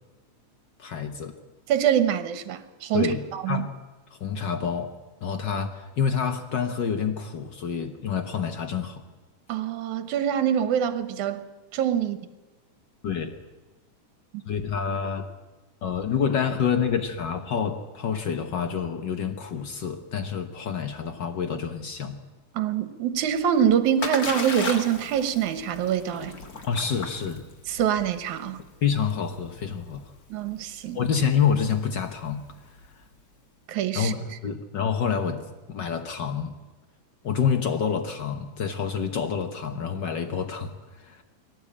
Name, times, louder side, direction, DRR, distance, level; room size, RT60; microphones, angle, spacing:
voice 1, 0.8-1.3 2.9-3.7 4.1-9.0 13.0-13.4 14.4-15.3 15.8-22.2 26.7-27.4 28.8-30.1 30.9-32.4 33.9-36.5 37.2-41.2, left 7 dB, 60° left, 1.1 m, -28 dB
voice 2, 1.7-3.7 9.5-11.4 11.7-12.2 22.6-26.3 27.7-28.6 30.3-31.0 33.7-34.1, right 9 dB, 70° right, 2.5 m, -25 dB
Splash splatter, 23.3-33.2, left 3 dB, 35° left, 1.9 m, -37 dB
22.0 x 17.5 x 8.7 m
omnidirectional pair, 3.6 m